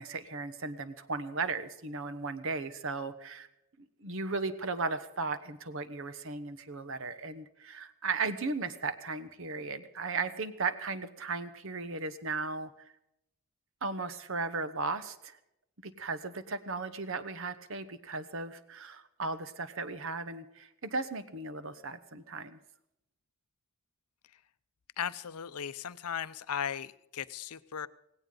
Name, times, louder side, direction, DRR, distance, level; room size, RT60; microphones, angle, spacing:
voice 1, 0.0-3.5 4.0-12.7 13.8-15.4 15.8-22.6, right 3 dB, 60° right, 12 dB, 1.1 m, -36 dB
voice 2, 25.0-27.9, left 8 dB, 85° left, 16 dB, 0.6 m, -37 dB
17.5 x 17.0 x 3.9 m, 0.84 s
head